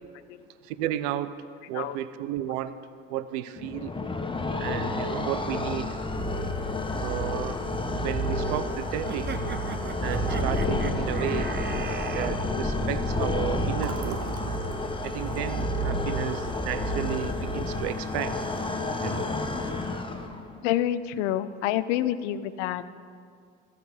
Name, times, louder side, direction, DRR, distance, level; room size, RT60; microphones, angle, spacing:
voice 1, 0.7-1.3 1.7-2.8 3.1-3.9 4.6-5.9 7.0-7.6 8.0-9.3 10.0-11.5 12.0-14.2 15.0-18.4 19.0-19.3, right 12 dB, 70° right, 14 dB, 0.7 m, -33 dB
sound 1, 3.6-20.5, left 1 dB, 15° left, 1.1 m, -30 dB
sound 2, 9.1-12.3, right 6 dB, 30° right, 0.8 m, -38 dB
Fill (with liquid), 13.8-17.4 17.8-17.9 18.2-18.8, right 6 dB, 50° right, 1.2 m, -44 dB
voice 2, 20.6-22.9, left 12 dB, 70° left, 15 dB, 0.6 m, -27 dB
14.5 x 5.9 x 7.9 m, 2.2 s
hypercardioid pair, 65°, 37 cm